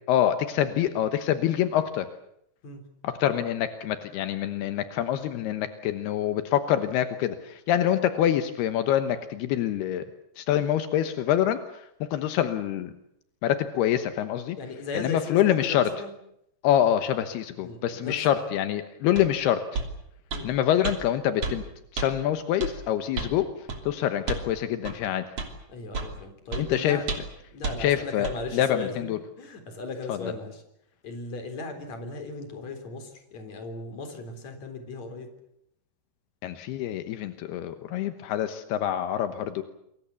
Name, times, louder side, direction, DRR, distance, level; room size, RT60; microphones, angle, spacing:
voice 1, 0.1-2.1 3.0-10.1 10.4-12.9 13.4-14.6 14.9-15.9 16.6-19.8 20.4-21.6 21.9-25.2 26.6-27.0 27.8-28.3 28.5-29.2 30.1-30.2 36.4-39.6, left 11 dB, 80° left, 9 dB, 3.2 m, -26 dB
voice 2, 14.6-16.1 17.6-18.4 20.3-20.5 25.7-27.1 27.5-29.1 29.4-30.6 31.0-35.3, left 3 dB, 45° left, 7 dB, 4.9 m, -37 dB
sound 1, 19.2-19.3 19.7-19.9 20.3-20.5 20.8-21.0 21.4-21.6 22.0-22.1 22.6-22.7 23.2-23.3 23.7-23.8 24.3-24.5 24.8-25.0 25.4-25.5 25.9-26.1 26.5-26.6 27.1-27.3 27.6-27.8 28.2-28.4, right 4 dB, 40° right, 3.8 m, -31 dB
27.5 x 23.0 x 7.1 m, 0.77 s
omnidirectional pair, 4.5 m